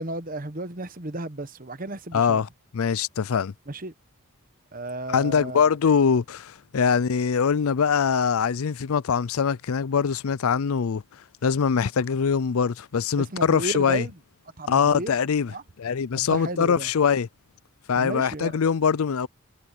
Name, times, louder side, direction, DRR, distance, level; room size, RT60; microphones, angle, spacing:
voice 1, 0.0-2.4 3.7-3.9 4.7-5.6 13.2-14.1 14.6-15.2 15.5-15.6 16.1-16.9 17.9-18.6, right 2 dB, 40° right, 1.1 m, -33 dB
voice 2, 2.1-2.5 2.7-3.5 5.1-11.0 11.4-14.0 14.7-15.5 15.8-17.3 17.9-19.3, left 6 dB, 75° left, 0.5 m, -23 dB
head